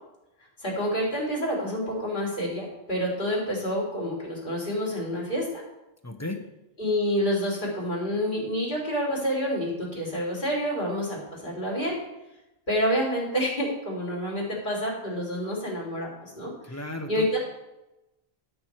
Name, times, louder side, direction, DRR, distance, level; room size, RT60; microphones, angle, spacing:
voice 1, 0.6-5.6 6.8-12.0 12.7-16.5 17.1-17.4, equal, 45° left, -5 dB, 3.9 m, -28 dB
voice 2, 6.0-6.4 16.6-17.4, left 1 dB, 15° left, 4 dB, 1.1 m, -34 dB
12.5 x 6.2 x 4.8 m, 0.93 s
omnidirectional pair, 1.1 m